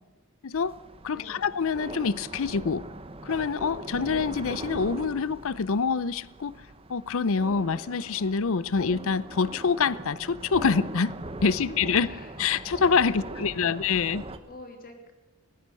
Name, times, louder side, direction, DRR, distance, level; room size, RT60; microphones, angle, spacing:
voice 1, 0.4-0.8 1.0-2.9 3.2-6.5 6.9-11.1 11.4-12.1 12.4-14.2, left 5 dB, 60° left, 0.6 m, -26 dB
sound 1, 0.5-14.4, right 2 dB, 25° right, 1.1 m, -41 dB
voice 2, 1.1-1.5 11.7-12.4 13.1-15.1, left 2 dB, 40° left, 3.2 m, -47 dB
18.5 x 18.5 x 7.7 m
head